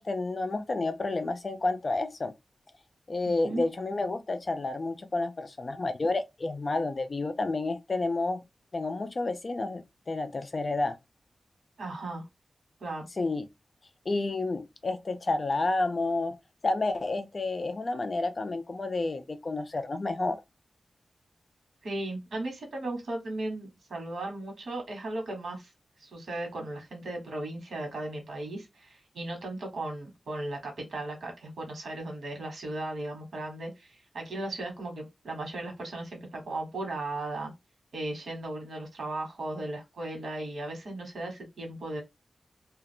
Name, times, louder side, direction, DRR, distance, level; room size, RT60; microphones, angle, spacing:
voice 1, 0.0-2.3 3.1-8.4 8.7-11.0 13.2-13.5 14.1-16.4 16.6-20.4, left 2 dB, 35° left, 0.3 m, -30 dB
voice 2, 11.8-12.3 12.8-13.1 21.8-25.7 26.0-37.5 37.9-42.0, right 2 dB, 80° right, 1.2 m, -36 dB
2.3 x 2.3 x 3.5 m
wide cardioid pair, 150°, 0 cm